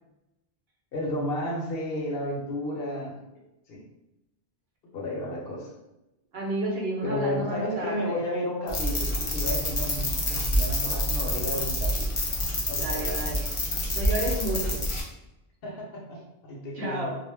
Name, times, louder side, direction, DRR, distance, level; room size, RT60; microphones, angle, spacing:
voice 1, 0.9-3.2 3.7-3.8 4.9-5.7 7.0-12.1 12.7-13.2 14.5-14.7 15.6-17.1, left 1 dB, 65° left, -1 dB, 0.9 m, -32 dB
voice 2, 6.3-8.1 12.8-13.5 13.9-14.8 16.8-17.1, right 2 dB, 65° right, -2 dB, 0.9 m, -31 dB
sound 1, 8.7-15.0, left 1 dB, 40° left, 0.5 m, -27 dB
2.3 x 2.1 x 3.2 m, 0.95 s
omnidirectional pair, 1.1 m